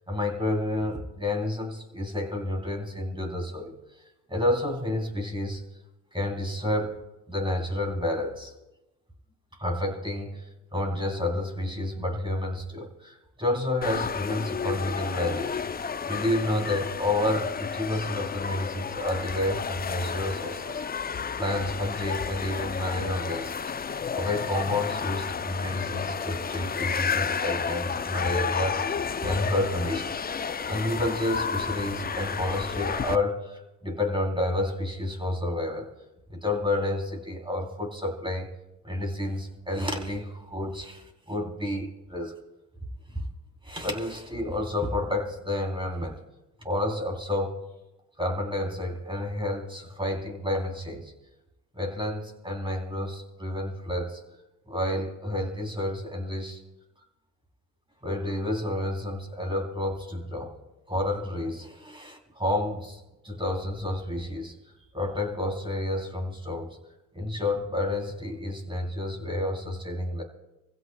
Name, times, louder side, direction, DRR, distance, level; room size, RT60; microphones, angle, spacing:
voice 1, 0.1-3.7 4.3-5.6 6.1-7.0 7.3-8.5 9.6-10.5 10.7-15.8 16.1-30.1 30.7-35.9 36.3-38.5 38.8-42.3 43.1-43.2 43.6-46.2 46.6-47.6 48.2-51.1 51.7-54.2 54.7-56.6 58.0-60.5 60.9-64.5 64.9-66.8 67.1-70.2, left 1 dB, 10° right, 2 dB, 3.4 m, -30 dB
sound 1, 13.8-33.2, left 6 dB, 20° left, 0.5 m, -31 dB
28.5 x 15.5 x 2.3 m, 0.96 s
supercardioid pair, 65°, 47 cm